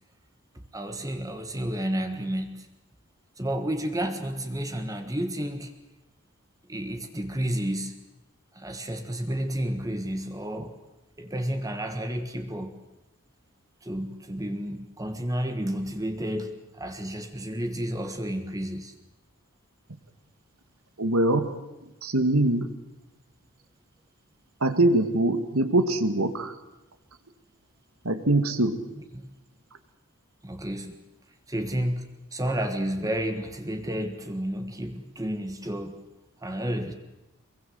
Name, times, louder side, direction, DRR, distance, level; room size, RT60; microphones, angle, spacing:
voice 1, 0.5-2.7 3.4-5.7 6.7-8.0 8.5-10.8 11.2-12.8 13.8-18.9 29.1-29.3 30.4-31.0 31.5-36.0 36.4-36.9, right 1 dB, 15° right, 6 dB, 1.5 m, -31 dB
voice 2, 21.0-21.5 22.0-22.7 24.6-26.5 28.0-28.8, right 2 dB, 80° right, 9 dB, 2.2 m, -23 dB
24.5 x 22.0 x 7.9 m, 1.0 s
head